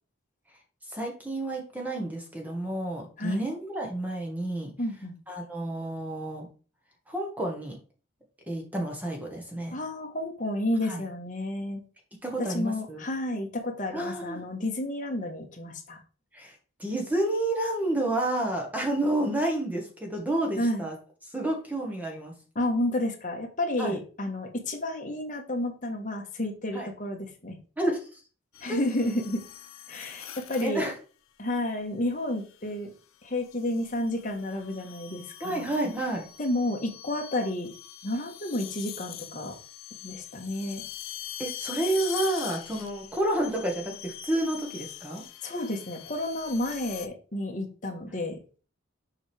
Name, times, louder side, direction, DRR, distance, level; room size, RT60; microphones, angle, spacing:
voice 1, 0.9-4.7 5.3-6.5 7.1-7.8 8.5-9.8 10.9-11.0 12.2-13.0 13.9-14.4 16.3-20.9 21.3-22.4 23.8-24.0 26.7-26.9 27.8-28.2 28.7-28.8 30.6-30.9 35.4-36.3 41.4-45.2, right 1 dB, 10° right, 1 dB, 1.3 m, -30 dB
voice 2, 4.8-5.1 9.7-11.8 12.5-16.0 20.6-20.9 22.5-27.6 28.6-29.4 29.9-30.9 31.4-32.9 33.2-35.7 36.4-37.7 38.0-39.5 40.0-40.9 45.4-48.4, left 1 dB, 40° left, 2 dB, 1.3 m, -31 dB
sound 1, 28.5-30.9 32.3-32.7 33.5-47.1, left 12 dB, 80° left, 0.7 m, -43 dB
7.1 x 4.9 x 3.4 m, 0.37 s
head